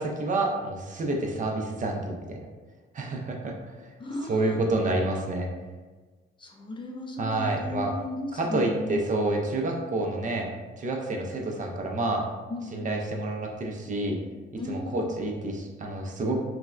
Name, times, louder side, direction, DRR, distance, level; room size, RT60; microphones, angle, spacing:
voice 1, 0.0-2.4 2.9-3.5 4.3-5.5 7.2-7.9 8.3-10.5 10.8-12.2 12.7-14.2 14.7-16.4, right 2 dB, 40° right, 1 dB, 0.5 m, -28 dB
voice 2, 4.0-4.6 6.4-9.0 12.5-12.8 14.6-15.1, left 1 dB, 25° left, 0 dB, 0.4 m, -35 dB
3.2 x 2.1 x 2.4 m, 1.3 s
cardioid pair, 90°, 20 cm